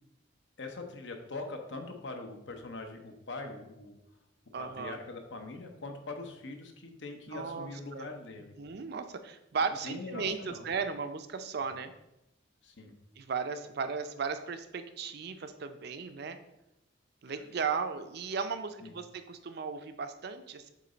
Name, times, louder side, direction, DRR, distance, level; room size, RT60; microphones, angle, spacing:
voice 1, 0.6-4.0 4.6-8.5 9.8-10.7 11.6-11.7 12.6-12.9 18.8-18.9, left 3 dB, 70° left, 4 dB, 0.9 m, -42 dB
voice 2, 4.5-5.0 7.3-8.1 8.4-11.9 13.2-16.4 17.2-20.7, right 5 dB, 55° right, 9 dB, 0.5 m, -36 dB
7.6 x 3.2 x 3.9 m, 0.92 s
head